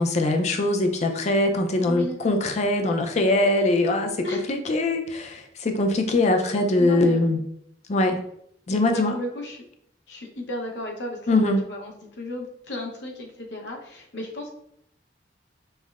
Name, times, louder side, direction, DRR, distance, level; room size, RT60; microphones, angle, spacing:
voice 1, 0.0-7.4 7.9-8.2 8.7-9.1 11.3-11.7, left 2 dB, 40° left, 4 dB, 0.4 m, -22 dB
voice 2, 1.9-2.2 4.2-4.5 6.8-7.2 8.9-9.6 10.1-14.5, left 1 dB, 75° left, 1 dB, 0.8 m, -34 dB
5.3 x 2.1 x 2.3 m, 0.72 s
head